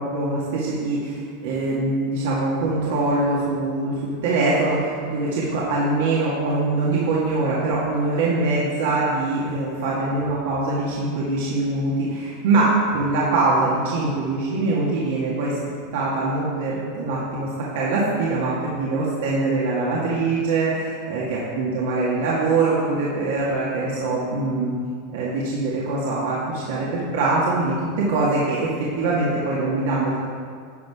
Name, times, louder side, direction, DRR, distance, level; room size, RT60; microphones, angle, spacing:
voice 1, 0.0-15.5 15.9-17.5 17.7-24.7 25.1-30.3, right 3 dB, 75° right, -6 dB, 2.0 m, -23 dB
10.5 x 5.5 x 4.9 m, 2.1 s
supercardioid pair, 135°, 0 cm